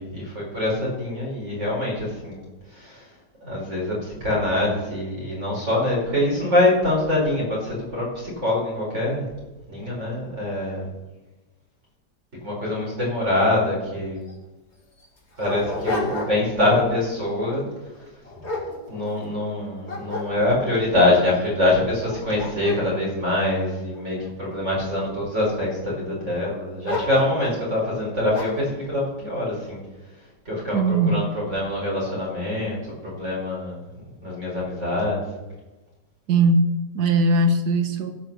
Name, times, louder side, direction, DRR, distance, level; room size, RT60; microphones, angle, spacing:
voice 1, 0.0-2.4 2.7-3.1 3.4-9.2 9.7-10.9 12.4-14.2 15.4-17.6 18.9-29.8 30.4-32.8 33.0-33.8 34.2-35.2, left 1 dB, 40° right, -5 dB, 5.1 m, -24 dB
Dog, 13.9-14.0 14.3-14.4 15.0-16.6 17.0-17.3 17.9-19.4 19.8-20.8 21.4-21.5 21.9-24.3 24.9-25.5 26.8-27.6 28.3-28.7, left 2 dB, 40° left, 2.6 m, -32 dB
voice 2, 30.7-31.2 36.3-38.1, right 2 dB, 70° right, 6 dB, 1.7 m, -20 dB
16.5 x 6.1 x 6.8 m, 1.1 s
omnidirectional pair, 1.9 m